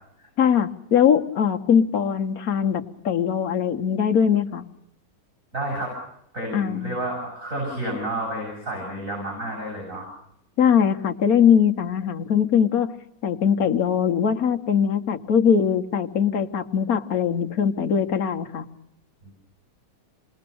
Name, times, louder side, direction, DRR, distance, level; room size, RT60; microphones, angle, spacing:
voice 1, 0.4-4.7 6.5-7.0 10.6-12.9 13.2-18.7, left 7 dB, 60° left, 7 dB, 1.5 m, -21 dB
voice 2, 5.5-5.9 6.3-10.1, right 1 dB, 50° right, -1 dB, 8.6 m, -30 dB
27.5 x 21.0 x 6.9 m, 0.76 s
omnidirectional pair, 1.8 m